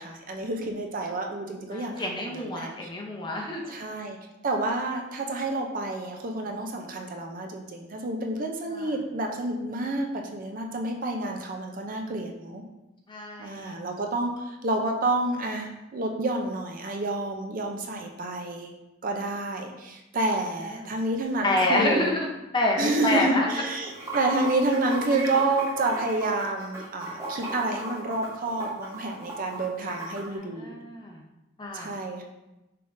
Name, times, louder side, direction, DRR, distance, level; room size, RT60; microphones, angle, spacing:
voice 1, 0.0-2.9 3.7-4.2 4.4-12.6 13.4-18.7 19.0-22.1 22.8-30.8 31.7-32.2, right 2 dB, 45° right, 2 dB, 0.5 m, -29 dB
voice 2, 1.7-3.7 8.7-8.8 13.1-13.7 20.8-20.9 21.4-22.3 22.5-23.5 30.2-31.2 31.6-31.9, left 2 dB, 25° left, -1 dB, 0.7 m, -28 dB
Water / Sink (filling or washing), 23.7-30.2, right 2 dB, 15° right, 1.0 m, -36 dB
5.7 x 3.6 x 2.6 m, 0.99 s
head